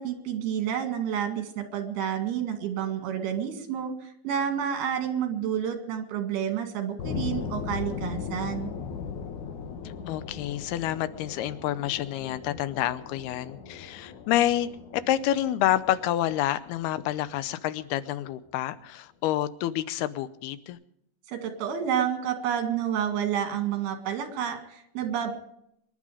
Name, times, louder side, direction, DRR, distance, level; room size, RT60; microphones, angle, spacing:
voice 1, 0.0-8.7 21.3-25.3, right 9 dB, 80° right, 4.0 m, -29 dB
sound 1, 7.0-17.8, left 6 dB, 60° left, 2.5 m, -38 dB
voice 2, 10.1-20.8, left 13 dB, 85° left, 2.8 m, -28 dB
24.5 x 11.5 x 5.0 m
omnidirectional pair, 4.4 m